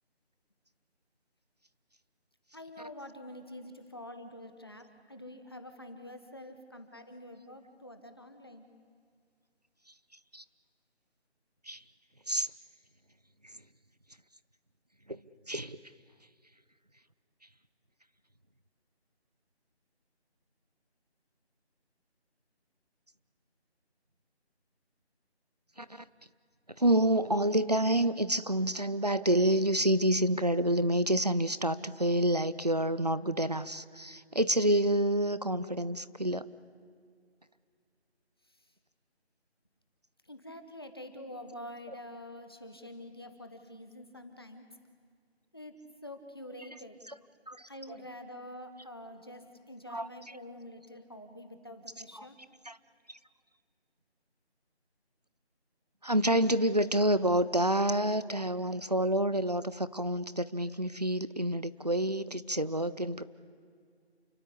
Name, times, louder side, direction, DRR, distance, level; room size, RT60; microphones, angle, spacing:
voice 1, 2.5-8.7 38.5-38.7 40.2-44.8 45.5-47.0 47.7-52.4, left 1 dB, 20° left, 1.2 m, -47 dB
voice 2, 15.5-15.8 25.8-26.0 26.8-36.5 47.1-47.2 47.5-47.7 49.9-50.1 52.2-52.3 52.7-52.8 53.1-53.2 56.0-63.2, right 1 dB, 40° right, 0.7 m, -28 dB
29.0 x 22.0 x 8.5 m
figure-of-eight pair, 175°, 33 cm